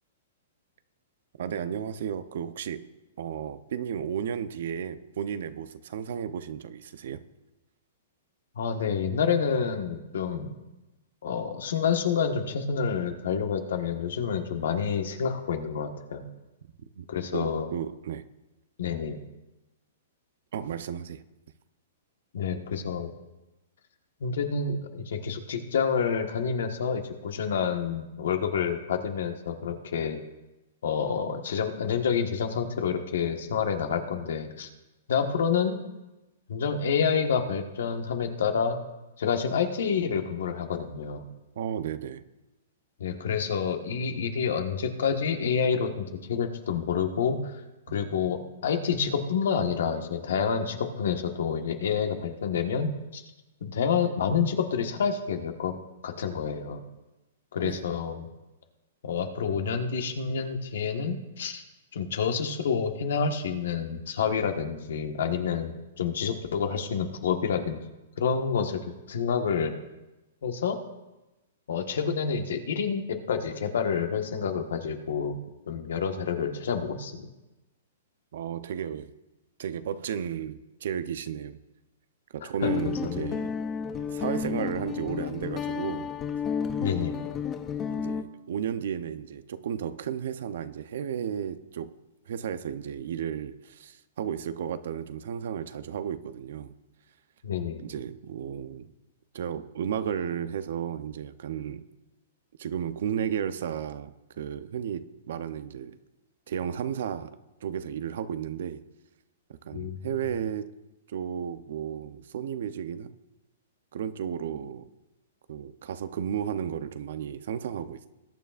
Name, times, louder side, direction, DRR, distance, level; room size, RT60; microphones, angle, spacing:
voice 1, 1.4-2.9 3.2-7.2 17.0-17.1 17.3-18.2 20.5-21.2 41.6-42.2 57.6-57.8 78.3-79.1 79.6-81.6 82.3-83.5 84.1-86.1 87.1-87.2 87.9-91.9 92.3-96.7 97.8-98.9 99.3-101.9 102.6-105.9 106.5-107.4 107.6-108.8 109.6-110.7 111.1-113.2 113.9-114.9 115.5-118.1, right 8 dB, 70° right, 0.7 m, -33 dB
voice 2, 8.5-10.5 11.2-16.3 17.1-17.7 18.8-19.2 22.3-23.1 24.2-30.2 30.8-34.7 35.1-35.8 36.5-38.8 39.2-41.2 43.0-47.6 47.9-53.2 53.6-55.7 56.0-56.8 57.5-58.3 59.0-61.6 61.9-67.8 68.2-69.7 70.4-70.8 71.7-75.4 75.7-77.3 82.4-82.7 83.0-83.3 86.8-87.2 97.4-97.8 109.7-110.0, left 6 dB, 75° left, 1.4 m, -28 dB
Guitar, 82.6-88.2, left 7 dB, 20° left, 0.7 m, -31 dB
20.5 x 9.1 x 2.5 m
hypercardioid pair, 140°, 0 cm